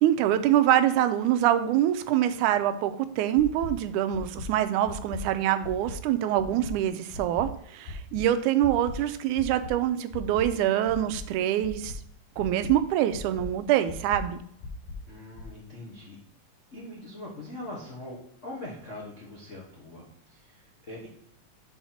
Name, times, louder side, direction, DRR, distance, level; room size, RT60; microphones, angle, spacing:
voice 1, 0.0-12.0 12.4-14.4, right 11 dB, 90° right, 9 dB, 2.1 m, -25 dB
sound 1, 3.4-3.7 4.1-4.4 4.9-5.2 5.6-5.9 6.4-6.7 7.1-7.4 7.9-8.2 8.6-8.9 9.4-9.7 10.1-10.4 10.9-11.2 11.6-11.9 12.4-12.7 13.1-13.5 13.9-14.2 14.6-15.0 15.4-15.5, left 4 dB, 80° left, 2.6 m, -39 dB
voice 2, 15.1-16.2 16.7-21.1, left 1 dB, 60° left, -5 dB, 0.7 m, -42 dB
5.7 x 4.7 x 5.7 m, 0.66 s
omnidirectional pair, 3.5 m